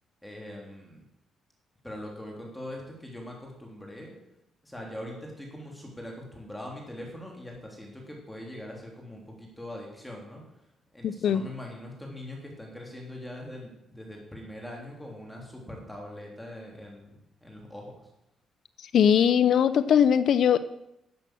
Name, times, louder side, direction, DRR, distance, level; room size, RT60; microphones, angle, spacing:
voice 1, 0.2-1.0 1.8-4.2 4.6-10.4 10.9-17.1 17.4-17.9, left 1 dB, 5° left, -1 dB, 3.3 m, -42 dB
voice 2, 11.0-11.4 18.9-20.6, left 8 dB, 65° left, 14 dB, 0.5 m, -20 dB
11.5 x 7.6 x 7.6 m, 0.83 s
cardioid pair, 90°, 0 cm